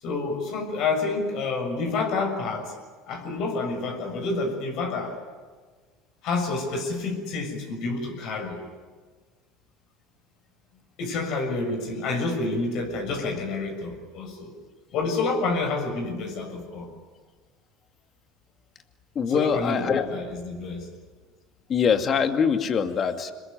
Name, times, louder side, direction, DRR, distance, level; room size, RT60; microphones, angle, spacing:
voice 1, 0.0-2.7 3.1-5.2 6.2-8.6 11.0-14.5 14.9-16.9 19.3-20.9, left 3 dB, 60° left, 3 dB, 6.7 m, -28 dB
voice 2, 19.2-20.1 21.7-23.3, left 7 dB, 40° left, 7 dB, 2.4 m, -23 dB
26.5 x 22.0 x 9.5 m, 1.4 s
hypercardioid pair, 75°, 0 cm